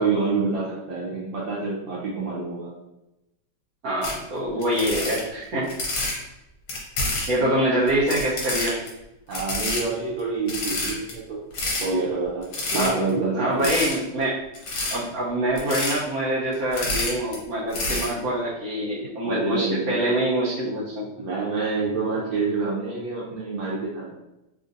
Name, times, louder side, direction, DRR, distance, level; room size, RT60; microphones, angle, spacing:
voice 1, 0.0-2.7 9.3-11.4 11.8-12.5 12.7-13.7 19.2-20.0 21.2-24.1, right 4 dB, 90° right, -7 dB, 1.4 m, -27 dB
voice 2, 3.8-6.1 7.3-8.7 12.7-13.0 13.3-14.3 14.9-21.0, right 1 dB, 60° right, -9 dB, 1.1 m, -25 dB
sound 1, 4.0-4.2 4.6-6.2 6.7-7.3 7.9-8.9 9.3-9.8 10.2-10.3 10.5-11.1 11.5-11.9 12.4-13.1 13.6-13.9 14.5-14.9 15.6-16.0 16.5-17.4 17.7-18.1, left 2 dB, 70° left, 1.4 m, -28 dB
3.6 x 2.5 x 2.5 m, 0.92 s
omnidirectional pair, 2.0 m